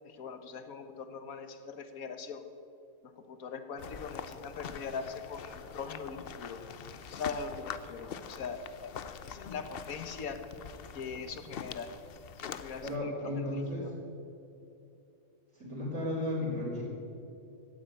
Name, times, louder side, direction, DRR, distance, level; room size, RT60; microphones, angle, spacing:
voice 1, 0.0-2.4 3.0-6.6 7.1-10.4 10.9-11.9 12.4-13.9, left 5 dB, 75° left, 9 dB, 1.5 m, -41 dB
sound 1, 3.8-13.0, left 7 dB, 50° left, 0.8 m, -44 dB
voice 2, 12.8-13.9 15.6-16.8, left 1 dB, 65° right, -6 dB, 4.4 m, -34 dB
15.5 x 9.8 x 8.8 m, 2.8 s
omnidirectional pair, 1.5 m